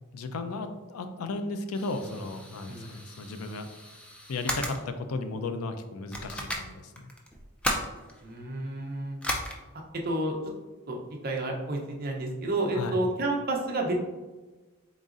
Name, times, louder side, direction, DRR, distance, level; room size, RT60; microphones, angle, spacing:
voice 1, 0.1-3.7 4.3-6.9 12.7-13.0, left 3 dB, 90° left, 8 dB, 0.4 m, -35 dB
sound 1, 1.7-4.8 5.5-5.6 6.1-8.4 9.2-9.6, equal, 5° left, 0.4 m, -35 dB
voice 2, 8.2-9.2 10.0-10.3 10.9-11.0 11.2-13.9, right 2 dB, 45° right, 0 dB, 0.6 m, -30 dB
3.9 x 3.8 x 2.5 m, 1.2 s
head